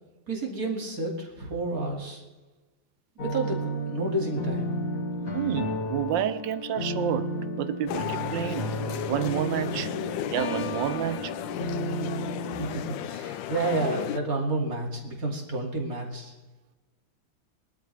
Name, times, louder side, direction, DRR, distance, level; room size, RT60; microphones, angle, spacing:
voice 1, 0.3-2.2 3.2-4.7 12.5-16.3, right 2 dB, 50° right, 2.9 m, -30 dB
sound 1, 3.2-12.6, equal, 45° left, 2.2 m, -32 dB
voice 2, 5.2-7.3 7.6-8.7 9.1-9.9 10.3-11.3, right 11 dB, 80° right, 1.4 m, -30 dB
sound 2, 7.9-14.2, left 11 dB, 85° left, 1.4 m, -35 dB
22.0 x 12.5 x 3.4 m
omnidirectional pair, 2.0 m